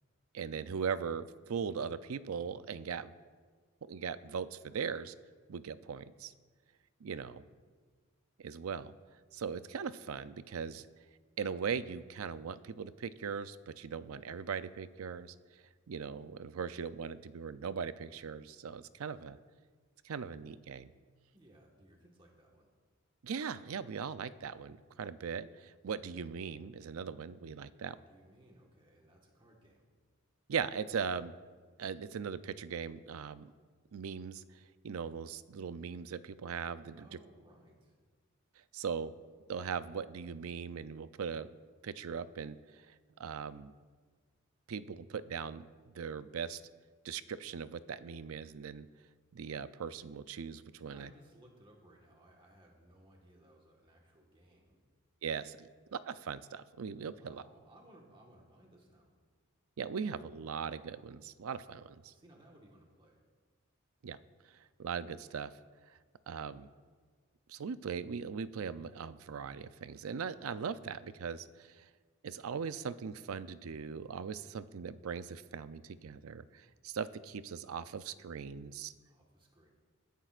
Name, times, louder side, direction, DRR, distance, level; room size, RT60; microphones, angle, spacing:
voice 1, 0.3-3.1 3.9-5.1 5.5-6.3 7.0-7.4 8.4-8.9 9.3-10.9 11.4-19.4 20.0-20.9 23.2-28.0 30.5-31.3 31.8-33.5 33.9-37.1 38.7-39.1 39.5-41.5 41.8-42.9 43.2-43.7 44.7-46.6 47.0-48.9 49.3-51.1 55.2-57.4 59.8-62.1 64.0-64.2 64.4-65.5 66.3-66.7 67.5-71.9 72.2-78.9, right 6 dB, 80° right, 14 dB, 0.5 m, -40 dB
voice 2, 21.3-22.7 27.7-29.9 36.9-38.0 50.9-54.8 57.1-59.1 62.1-63.2 79.0-79.7, right 1 dB, 25° right, -1 dB, 1.4 m, -61 dB
21.5 x 10.5 x 2.5 m, 1.5 s
head